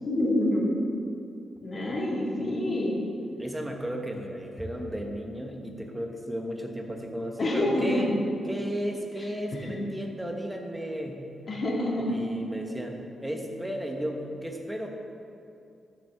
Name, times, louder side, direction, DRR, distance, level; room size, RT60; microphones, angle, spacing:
voice 1, 0.0-0.8 1.6-3.0 7.4-8.1 9.5-9.8 11.5-12.2, left 1 dB, 40° left, -4 dB, 2.0 m, -27 dB
voice 2, 3.4-8.1 8.4-11.3 12.1-14.9, equal, 5° right, 2 dB, 1.0 m, -34 dB
14.0 x 5.9 x 3.5 m, 2.5 s
cardioid pair, 120°, 0 cm